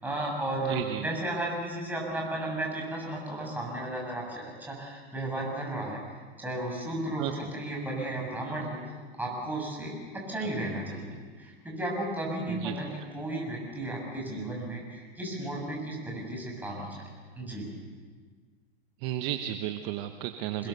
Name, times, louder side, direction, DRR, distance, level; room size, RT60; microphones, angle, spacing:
voice 1, 0.0-6.0 6.4-8.8 9.2-16.9 17.4-17.7 20.6-20.7, right 1 dB, 5° right, -2 dB, 7.4 m, -34 dB
voice 2, 0.7-1.0 7.2-7.3 10.4-10.5 12.5-12.8 19.0-20.7, right 12 dB, 40° right, 7 dB, 1.1 m, -33 dB
27.0 x 20.5 x 6.9 m, 1.5 s
hypercardioid pair, 135°, 32 cm